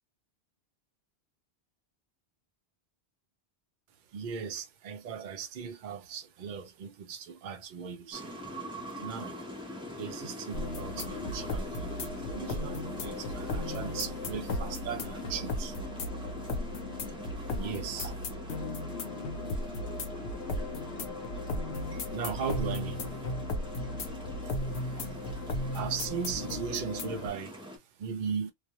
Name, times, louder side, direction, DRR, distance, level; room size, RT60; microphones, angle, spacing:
voice 1, 4.1-8.4 9.0-9.4 9.8-15.8 17.5-18.1 22.1-23.2 24.4-24.6 24.9-25.0 25.7-27.6 28.0-28.5, right 6 dB, 55° right, 0.6 m, -38 dB
sound 1, 8.1-27.8, left 1 dB, 5° right, 0.7 m, -43 dB
sound 2, 10.5-27.3, left 2 dB, 85° left, 0.9 m, -36 dB
2.3 x 2.0 x 2.8 m
omnidirectional pair, 1.1 m